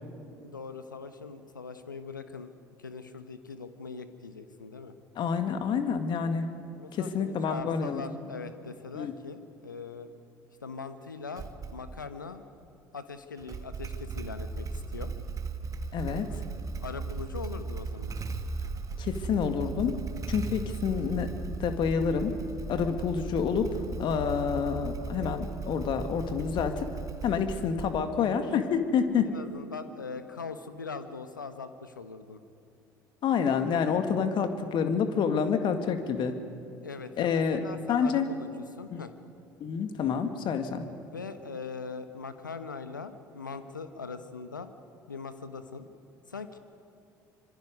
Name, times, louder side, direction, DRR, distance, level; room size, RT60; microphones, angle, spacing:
voice 1, 0.4-2.5 2.8-4.9 6.8-10.1 10.6-12.5 12.9-15.1 16.8-18.2 22.9-23.2 29.2-32.4 36.8-39.1 41.1-44.7 45.1-45.9 46.3-46.6, left 4 dB, 85° left, 10 dB, 1.0 m, -41 dB
voice 2, 5.2-6.5 6.9-8.0 8.9-9.1 15.9-16.3 19.0-20.0 20.3-22.3 22.7-26.9 27.2-29.3 33.2-36.4 37.2-37.6 37.9-38.3 38.9-39.0 39.6-40.9, left 6 dB, 50° left, 7 dB, 2.0 m, -28 dB
Motorcycle / Engine starting, 11.4-12.0 13.4-28.3, right 4 dB, 35° right, 1.4 m, -37 dB
25.5 x 25.0 x 5.3 m, 2.6 s
figure-of-eight pair, 60°, 10 cm